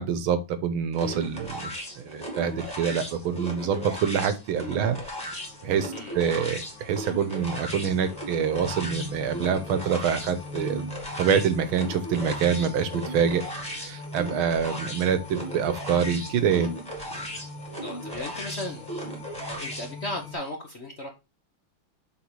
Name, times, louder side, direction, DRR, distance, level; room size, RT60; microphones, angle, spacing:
voice 1, 0.0-5.0 5.6-10.8 11.2-16.7, right 7 dB, 80° right, 11 dB, 1.7 m, -26 dB
sound 1, 0.9-19.9, equal, 5° left, 2.2 m, -37 dB
sound 2, 4.5-20.4, left 1 dB, 70° left, 2.4 m, -42 dB
voice 2, 17.8-18.9 19.5-21.1, left 2 dB, 45° left, 2 dB, 1.0 m, -36 dB
7.2 x 3.7 x 4.6 m, 0.26 s
omnidirectional pair, 2.3 m